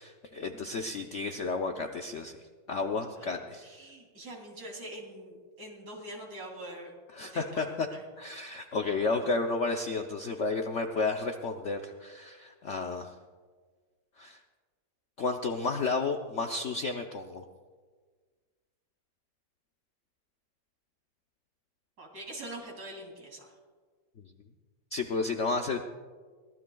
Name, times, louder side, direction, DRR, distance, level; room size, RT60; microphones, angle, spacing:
voice 1, 0.0-2.4 2.7-3.7 7.1-7.9 8.2-13.1 14.2-14.4 15.2-17.4 24.9-25.8, left 3 dB, 60° left, 4 dB, 0.8 m, -32 dB
voice 2, 3.2-6.9 7.2-8.0 22.0-23.5, right 1 dB, 55° right, 0 dB, 3.5 m, -44 dB
23.0 x 18.5 x 2.3 m, 1.5 s
omnidirectional pair, 2.0 m